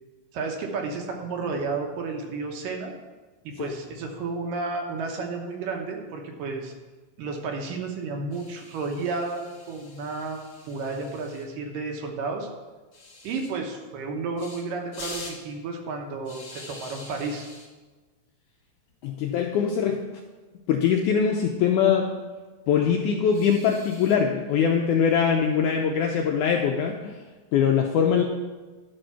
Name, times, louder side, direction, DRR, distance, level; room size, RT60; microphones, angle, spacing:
voice 1, 0.3-2.9 3.4-6.7 7.2-10.4 10.7-12.5 13.2-17.5, right 4 dB, 70° right, 2 dB, 2.6 m, -32 dB
sound 1, 8.3-11.5 12.9-13.5 14.4-14.6 14.9-15.4 16.3-17.7 18.9-19.1 19.4-19.5 19.8-19.9 21.2-21.7 23.3-24.2, left 2 dB, 40° left, 2.3 m, -45 dB
voice 2, 19.0-20.0 20.7-22.1 22.7-27.2 27.5-28.2, left 7 dB, 85° left, 2 dB, 1.8 m, -22 dB
11.0 x 5.4 x 5.7 m, 1.3 s
omnidirectional pair, 4.2 m